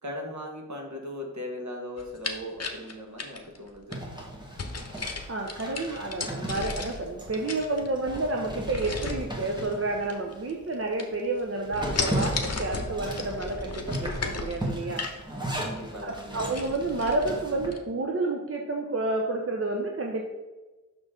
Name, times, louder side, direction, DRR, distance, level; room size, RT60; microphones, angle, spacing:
voice 1, 0.0-4.0 15.6-16.7, left 1 dB, 60° right, 2 dB, 1.4 m, -38 dB
sound 1, 2.0-4.0 4.6-7.1 7.3-8.2 8.7-9.3 10.0-10.7 11.0-11.4 11.7-15.2 15.7-15.8 16.1-16.2 16.5-17.3 17.7-17.8, left 3 dB, 50° left, 0.9 m, -34 dB
Zipper (clothing), 3.9-10.5 10.9-11.0 11.4-17.7, right 1 dB, 15° right, 1.6 m, -36 dB
voice 2, 5.3-15.1 16.0-20.3, right 2 dB, 45° right, 1 dB, 0.7 m, -30 dB
6.5 x 6.0 x 3.7 m, 1.2 s
wide cardioid pair, 80°, 32 cm